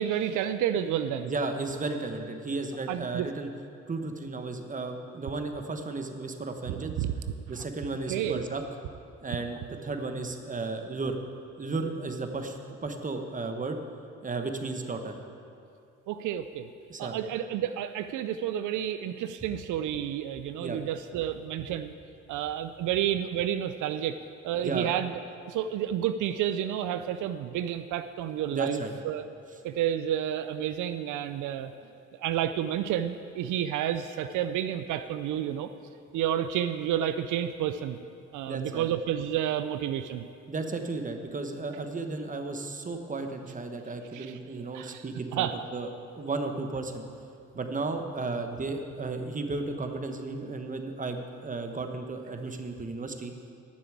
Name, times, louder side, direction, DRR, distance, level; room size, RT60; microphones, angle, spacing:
voice 1, 0.0-1.3 2.9-3.3 6.7-7.1 8.1-8.5 16.1-16.7 17.0-21.9 22.3-24.2 24.4-25.2 25.5-28.8 29.0-29.2 29.6-31.7 32.2-35.7 36.1-38.0 38.3-40.3 44.1-44.4 44.7-45.0 45.3-45.6, right 10 dB, 80° right, 10 dB, 0.5 m, -30 dB
voice 2, 1.2-3.5 3.9-7.0 7.5-8.6 9.2-11.2 11.6-13.8 14.2-15.1 16.9-17.2 20.6-20.8 24.6-24.9 28.5-28.9 38.5-38.9 40.5-45.9 46.1-47.0 47.5-53.3, right 3 dB, 25° right, 5 dB, 1.1 m, -34 dB
9.5 x 7.0 x 8.5 m, 2.6 s
cardioid pair, 90°, 30 cm